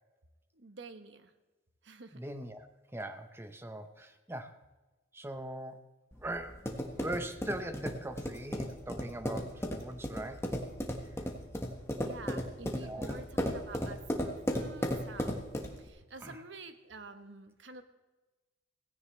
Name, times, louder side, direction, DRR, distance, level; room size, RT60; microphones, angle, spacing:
voice 1, 0.5-1.3 1.8-2.2 12.0-15.4 15.8-17.8, right 3 dB, 75° right, 8 dB, 1.1 m, -49 dB
voice 2, 2.1-2.7 2.9-4.5 5.1-5.8 6.2-10.5 12.8-13.2 16.2-16.4, right 1 dB, 15° right, 8 dB, 0.7 m, -41 dB
sound 1, 6.1-15.9, equal, 15° left, 1.4 m, -36 dB
17.0 x 16.0 x 3.2 m, 1.2 s
head